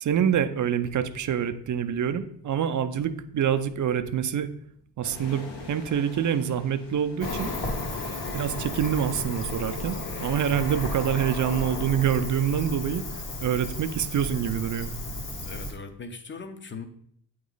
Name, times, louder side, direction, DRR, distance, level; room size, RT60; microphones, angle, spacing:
voice 1, 0.0-4.5 5.0-7.5 8.3-13.0 13.4-14.9, right 9 dB, 45° right, 10 dB, 0.5 m, -26 dB
sound 1, 5.0-13.4, left 2 dB, 75° left, 1.4 m, -49 dB
Cricket, 7.2-15.7, left 2 dB, 60° left, 1.6 m, -33 dB
voice 2, 15.4-16.9, left 4 dB, 25° left, 8 dB, 0.7 m, -39 dB
8.7 x 3.1 x 3.9 m, 0.65 s
cardioid pair, 115°, 44 cm